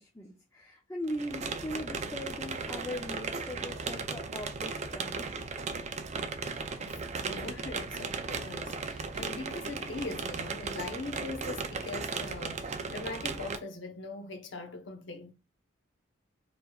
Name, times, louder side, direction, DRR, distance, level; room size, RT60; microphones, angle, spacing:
voice 1, 0.0-5.5, equal, 15° left, 0.6 m, -40 dB
sound 1, 1.1-13.6, right 4 dB, 35° right, 0.4 m, -36 dB
voice 2, 6.8-15.3, left 2 dB, 65° left, 0.9 m, -41 dB
6.6 x 3.0 x 2.3 m
head